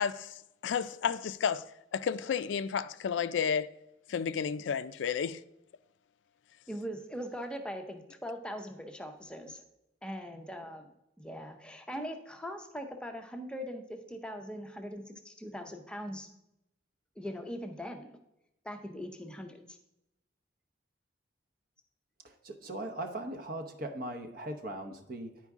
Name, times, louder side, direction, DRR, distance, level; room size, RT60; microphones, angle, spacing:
voice 1, 0.0-1.6 1.9-3.7 4.1-5.4, left 7 dB, 75° left, 0.3 m, -32 dB
voice 2, 6.7-9.6 10.0-16.3 17.2-18.2 18.6-19.8, equal, 5° left, 0.6 m, -41 dB
voice 3, 22.2-25.4, right 1 dB, 50° right, 0.8 m, -39 dB
10.5 x 4.6 x 3.6 m
head